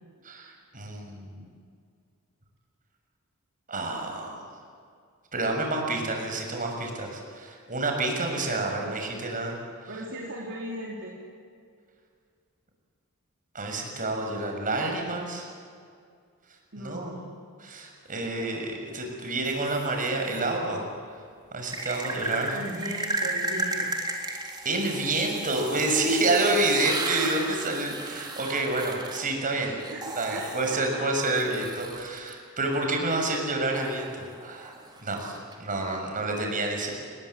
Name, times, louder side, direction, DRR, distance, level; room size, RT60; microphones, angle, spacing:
voice 1, 0.2-1.5 3.7-4.4 5.3-9.6 13.5-15.5 16.8-17.2 17.6-20.9 21.5-22.6 24.6-29.7 30.2-34.7 35.0-36.9, right 2 dB, 40° right, 2 dB, 6.6 m, -28 dB
voice 2, 9.9-11.2 16.7-17.4 22.5-23.9 29.6-31.1, right 1 dB, 60° right, -3 dB, 4.0 m, -38 dB
sound 1, 19.4-20.4 21.7-32.3 33.7-35.5, right 2 dB, 20° right, 3.5 m, -35 dB
29.5 x 21.5 x 8.6 m, 2.2 s
head